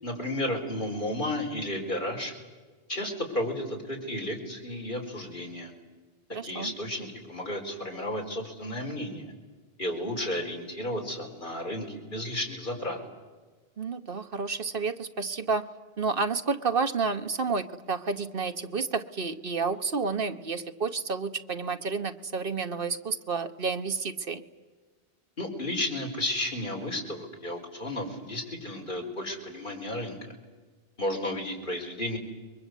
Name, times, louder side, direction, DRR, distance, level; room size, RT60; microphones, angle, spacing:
voice 1, 0.0-2.3 2.9-5.7 6.4-9.3 9.8-13.0 25.4-30.3 31.0-32.2, left 1 dB, 50° left, 0 dB, 4.9 m, -33 dB
voice 2, 6.3-6.7 13.8-15.6 16.0-24.4, right 4 dB, 55° right, 9 dB, 1.3 m, -30 dB
30.0 x 22.5 x 8.2 m, 1.4 s
omnidirectional pair, 1.1 m